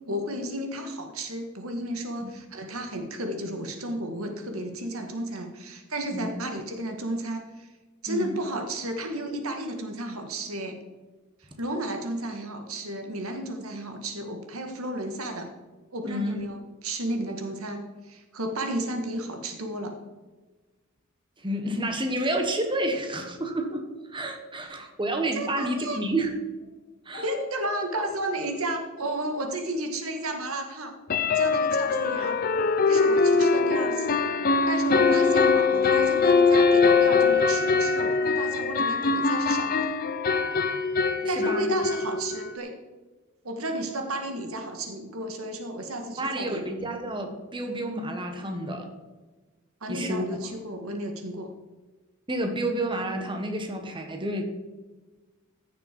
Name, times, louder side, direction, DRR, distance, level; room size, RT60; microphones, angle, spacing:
voice 1, 0.1-7.7 8.0-10.8 11.4-15.5 15.9-20.0 25.3-26.0 27.2-31.0 31.3-32.4 32.9-34.2 34.7-39.9 41.2-42.8 43.4-46.6 49.8-51.5, right 1 dB, 85° right, 5 dB, 1.8 m, -33 dB
voice 2, 16.0-16.3 21.4-26.3 27.0-27.3 41.2-41.7 46.2-48.9 49.9-50.4 52.3-54.4, right 1 dB, 25° right, 4 dB, 1.4 m, -30 dB
sound 1, 27.1-27.2 27.6-27.8 28.1-28.2 31.1-42.6, left 4 dB, 45° left, 0.7 m, -22 dB
15.0 x 6.7 x 4.6 m, 1.2 s
head